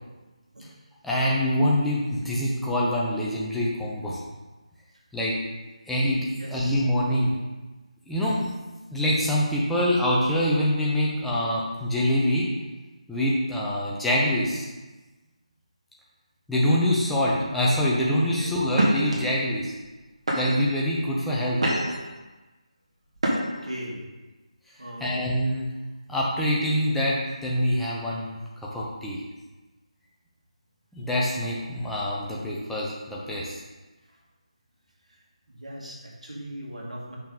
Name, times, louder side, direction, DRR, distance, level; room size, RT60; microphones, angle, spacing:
voice 1, 1.0-4.2 5.1-5.4 5.9-7.4 8.1-8.5 8.9-12.5 13.1-14.7 16.5-19.7 20.4-21.6 25.0-25.7 26.1-29.2 30.9-33.6, equal, ahead, -6 dB, 0.8 m, -25 dB
voice 2, 6.4-6.8 18.4-18.5 23.3-24.0 24.8-25.2 34.1-34.2 35.1-35.2 35.5-37.2, right 1 dB, 70° right, -3 dB, 2.2 m, -39 dB
sound 1, 18.7-19.1 19.8-19.9 20.3-20.8 21.3-22.1 23.2-23.7, right 1 dB, 55° right, 2.0 m, -25 dB
6.5 x 5.6 x 4.0 m, 1.2 s
figure-of-eight pair, 155°, 4 cm